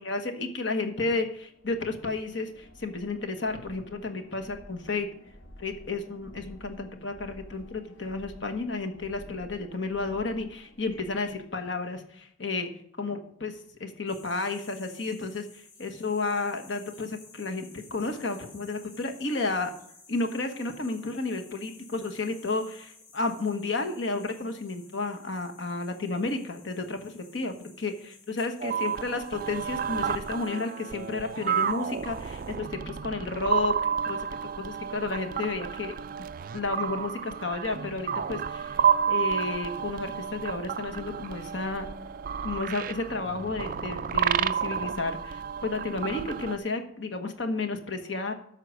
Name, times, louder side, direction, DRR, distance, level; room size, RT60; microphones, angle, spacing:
voice 1, 0.0-5.1 5.6-12.7 13.0-19.7 20.1-33.8 34.1-34.3 34.6-36.0 36.5-41.9 42.4-48.3, left 3 dB, 65° left, 6 dB, 1.2 m, -32 dB
sound 1, 0.9-11.5, equal, 80° left, 1.4 m, -52 dB
sound 2, 14.1-32.5, left 4 dB, 35° left, 5.0 m, -54 dB
sound 3, 28.6-46.6, right 7 dB, 45° right, 0.3 m, -31 dB
13.0 x 4.6 x 6.4 m, 0.70 s
head